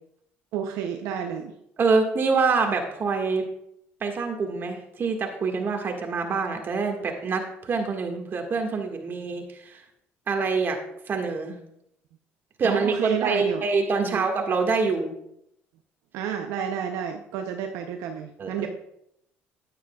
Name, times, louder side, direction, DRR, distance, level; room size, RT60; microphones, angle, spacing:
voice 1, 0.5-1.5 12.6-13.6 14.0-14.2 16.1-18.7, right 8 dB, 80° right, 4 dB, 0.6 m, -30 dB
voice 2, 1.8-3.4 4.0-9.8 10.3-10.8 11.1-11.6 12.6-15.1 18.4-18.7, right 4 dB, 45° right, 3 dB, 1.7 m, -25 dB
9.9 x 9.3 x 2.3 m, 0.77 s
supercardioid pair, 85°, 5 cm